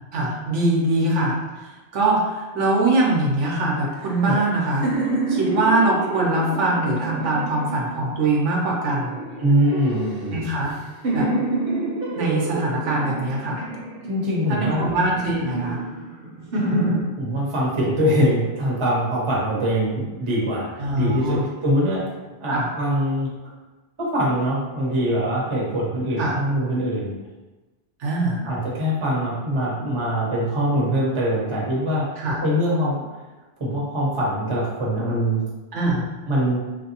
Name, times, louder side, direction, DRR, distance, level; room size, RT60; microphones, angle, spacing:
voice 1, 0.1-4.9 5.3-9.2 10.3-10.8 11.1-11.3 12.2-13.6 14.5-15.8 20.8-21.5 22.5-22.7 26.2-26.4 28.0-28.5 32.2-32.4 35.7-36.1, right 2 dB, 85° right, -3 dB, 1.0 m, -22 dB
sound 1, 3.9-8.2 8.9-10.7 11.0-14.4 15.0-17.0, right 2 dB, 55° right, 0.9 m, -28 dB
voice 2, 9.4-10.4 14.1-14.9 17.2-20.7 20.9-22.1 22.4-23.3 24.0-27.2 28.4-32.1 32.4-33.0 33.6-35.4 36.3-36.6, equal, 30° right, -5 dB, 0.7 m, -23 dB
3.2 x 2.6 x 2.8 m, 1.2 s
omnidirectional pair, 1.2 m